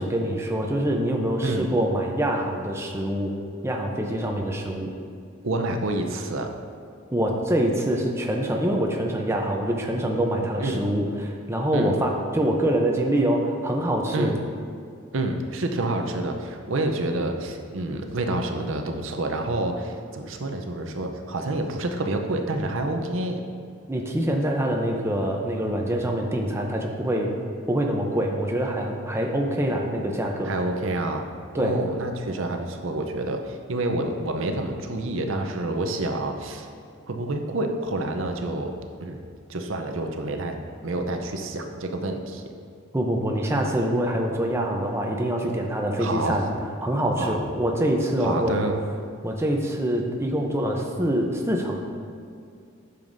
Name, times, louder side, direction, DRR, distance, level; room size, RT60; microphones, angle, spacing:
voice 1, 0.0-3.3 3.6-4.9 7.1-14.3 23.9-27.3 27.7-30.5 31.5-31.7 42.9-46.5 46.8-48.5 49.2-51.8, right 1 dB, 10° right, 1 dB, 0.6 m, -25 dB
voice 2, 5.4-6.5 10.6-10.8 11.7-11.9 14.1-14.4 15.1-23.4 30.4-31.2 31.5-36.7 37.1-38.7 39.0-39.2 39.5-40.6 40.8-42.5 46.0-46.4 47.2-47.4 48.2-48.8, right 2 dB, 65° right, 5 dB, 0.7 m, -28 dB
10.5 x 6.8 x 2.6 m, 2.4 s
head